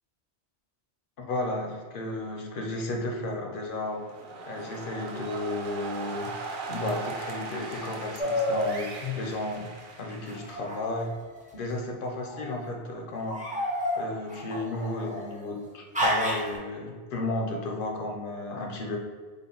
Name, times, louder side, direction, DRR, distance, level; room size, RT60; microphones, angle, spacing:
voice 1, 1.2-4.0 4.5-6.3 6.7-9.7 10.0-11.1 11.5-13.4 14.0-19.0, left 2 dB, 60° left, 2 dB, 0.7 m, -33 dB
sound 1, 3.9-10.7, right 3 dB, 60° right, 0.6 m, -39 dB
sound 2, 8.2-8.8 10.3-11.5 12.2-12.7 13.2-15.3 15.9-16.6, left 1 dB, 15° right, 0.3 m, -30 dB
3.6 x 2.1 x 3.8 m, 1.5 s
omnidirectional pair, 1.1 m